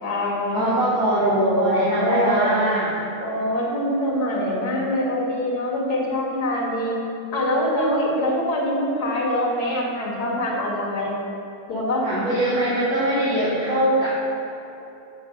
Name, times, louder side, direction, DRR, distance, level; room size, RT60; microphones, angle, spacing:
voice 1, 0.0-0.7 1.3-2.5 3.2-7.0 7.3-11.2 11.7-12.1, left 1 dB, 85° left, -3 dB, 2.2 m, -24 dB
voice 2, 0.5-3.0 12.0-14.1, right 1 dB, 65° right, -9 dB, 2.0 m, -22 dB
6.8 x 6.8 x 5.7 m, 2.9 s
omnidirectional pair, 1.7 m